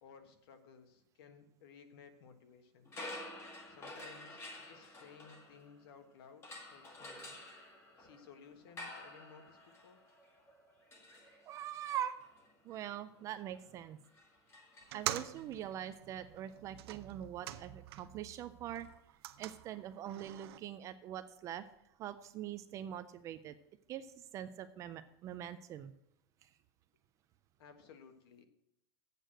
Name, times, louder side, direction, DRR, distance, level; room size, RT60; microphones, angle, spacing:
voice 1, 0.0-2.9 3.7-7.4 8.0-10.0 27.6-28.5, left 6 dB, 60° left, 7 dB, 1.4 m, -58 dB
sound 1, 2.9-6.0 6.4-15.4, left 1 dB, 15° left, 1.4 m, -51 dB
voice 2, 11.5-12.1 12.6-14.0 14.9-18.9 19.4-21.6 22.0-23.6 23.9-24.1 24.3-25.9, right 11 dB, 20° right, 11 dB, 0.3 m, -43 dB
sound 2, 14.8-18.3 18.6-20.6, right 13 dB, 60° right, 0.6 m, -45 dB
8.3 x 6.3 x 7.7 m, 0.76 s
supercardioid pair, 165°, 14 cm